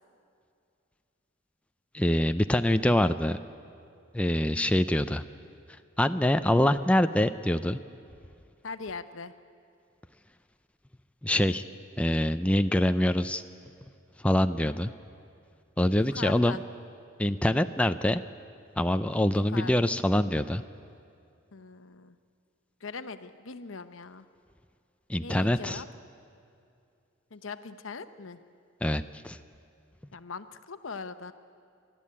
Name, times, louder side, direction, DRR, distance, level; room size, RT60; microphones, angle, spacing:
voice 1, 1.9-3.4 4.1-5.2 6.0-7.8 11.2-11.6 12.0-13.4 14.2-14.9 15.8-16.6 17.2-18.2 18.8-20.6 25.1-25.8 28.8-29.4, left 1 dB, 5° left, 9 dB, 0.4 m, -25 dB
voice 2, 8.6-9.3 15.9-16.6 19.3-19.7 21.5-22.2 22.8-24.2 25.2-25.9 27.3-28.4 30.1-31.3, left 4 dB, 80° left, 10 dB, 0.9 m, -40 dB
30.0 x 12.0 x 8.6 m, 2.5 s
head